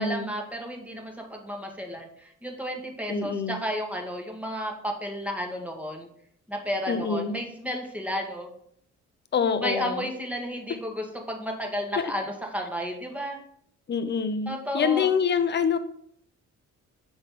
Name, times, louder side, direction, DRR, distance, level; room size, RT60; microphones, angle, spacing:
voice 1, 0.0-6.1 6.5-8.5 9.6-13.4 14.5-15.1, equal, 5° right, 2 dB, 1.3 m, -32 dB
voice 2, 3.1-3.6 6.9-7.4 9.3-10.1 12.0-12.1 13.9-15.8, left 6 dB, 35° left, 11 dB, 0.6 m, -26 dB
7.0 x 3.8 x 3.7 m, 0.66 s
cardioid pair, 90°, 30 cm